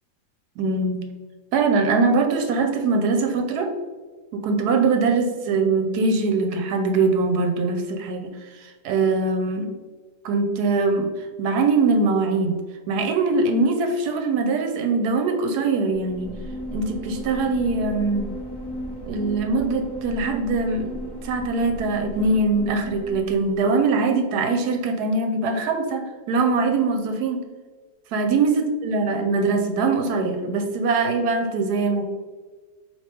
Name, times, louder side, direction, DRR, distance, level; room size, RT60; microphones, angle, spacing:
voice 1, 0.6-1.0 1.5-3.7 4.3-9.7 10.2-11.1 11.4-12.6 12.9-16.3 16.7-18.3 19.1-27.4 28.1-32.0, right 3 dB, 75° right, 5 dB, 1.1 m, -22 dB
sound 1, 15.9-23.7, equal, 30° left, 0.4 m, -35 dB
4.3 x 2.9 x 3.3 m, 1.4 s
omnidirectional pair, 1.8 m